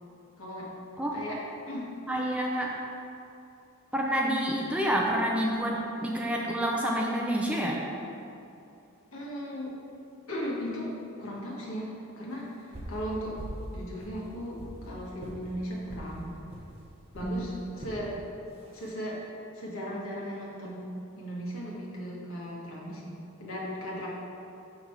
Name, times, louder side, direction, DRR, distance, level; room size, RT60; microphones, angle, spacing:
voice 1, 0.4-0.7 1.1-1.9 9.1-9.7 10.3-13.4 13.7-16.4 17.1-18.2 18.7-19.2 19.5-20.9 21.2-24.1, equal, 70° left, -4 dB, 1.8 m, -37 dB
voice 2, 2.1-2.8 3.9-7.8 17.2-17.5, equal, 5° right, -2 dB, 0.6 m, -28 dB
sound 1, 12.7-13.0 13.4-13.7 14.0-14.8 15.2-15.4 15.9-16.1 16.5-16.7 17.1-17.3 17.8-18.0 18.6-18.9, right 1 dB, 30° right, 1.1 m, -41 dB
6.7 x 6.0 x 4.7 m, 2.7 s
head